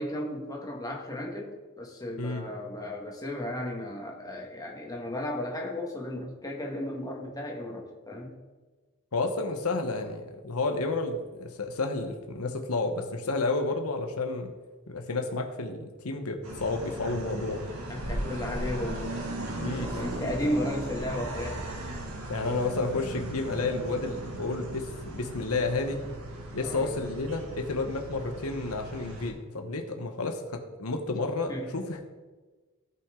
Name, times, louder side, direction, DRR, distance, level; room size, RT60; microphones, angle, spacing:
voice 1, 0.0-8.3 17.9-19.2 20.0-21.7 26.6-26.9 31.5-31.8, left 1 dB, 15° left, -1 dB, 1.7 m, -34 dB
voice 2, 9.1-14.5 14.9-17.6 19.6-20.0 22.3-26.0 26.5-32.1, left 3 dB, 80° left, 4 dB, 1.1 m, -31 dB
sound 1, 16.4-29.3, right 1 dB, 80° right, 2.1 m, -37 dB
17.0 x 5.9 x 3.8 m, 1.3 s
head